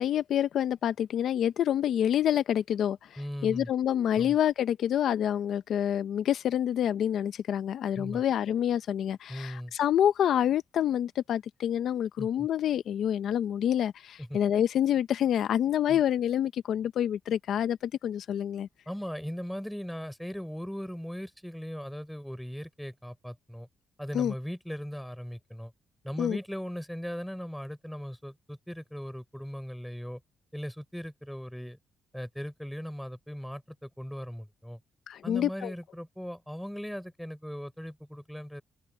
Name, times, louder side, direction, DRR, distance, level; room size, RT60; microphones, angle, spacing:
voice 1, 0.0-18.7 24.1-24.3 26.2-26.4 35.1-35.7, left 10 dB, 70° left, 0.7 m, -27 dB
voice 2, 3.2-3.7 4.1-4.4 7.9-8.2 9.3-9.7 12.2-12.5 14.2-14.4 15.9-16.0 18.9-23.7 24.0-25.7 26.0-30.2 30.5-31.8 32.1-34.8 35.2-38.6, equal, ahead, 3.9 m, -38 dB
open air
cardioid pair, 90°, 0 cm